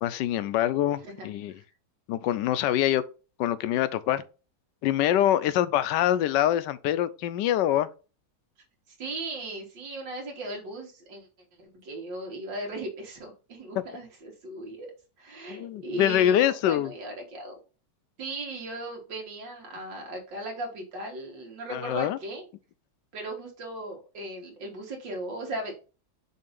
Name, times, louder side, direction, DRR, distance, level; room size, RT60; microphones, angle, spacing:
voice 1, 0.0-1.5 2.1-3.0 3.4-4.2 4.8-7.9 15.5-16.9 21.7-22.2, left 12 dB, 80° left, 1.2 m, -25 dB
voice 2, 1.0-1.6 8.9-11.3 11.6-14.9 15.2-17.6 18.2-22.5 23.1-25.7, right 2 dB, 85° right, 2.5 m, -37 dB
6.6 x 2.8 x 5.2 m
omnidirectional pair, 1.9 m